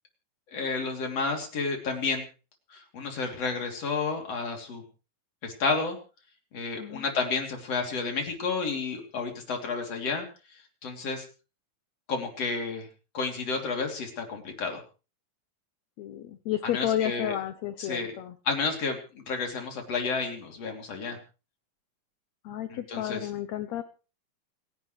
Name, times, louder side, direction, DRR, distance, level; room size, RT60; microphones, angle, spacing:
voice 1, 0.5-2.3 2.7-4.8 5.4-6.0 6.5-10.3 10.8-11.3 12.1-12.9 13.1-14.8 16.6-17.3 17.8-18.1 18.5-21.2 22.7-23.2, left 4 dB, 45° left, 2 dB, 3.9 m, -31 dB
voice 2, 16.0-18.4 22.4-23.8, left 11 dB, 85° left, 11 dB, 1.5 m, -31 dB
29.0 x 11.0 x 3.2 m, 0.35 s
omnidirectional pair, 4.2 m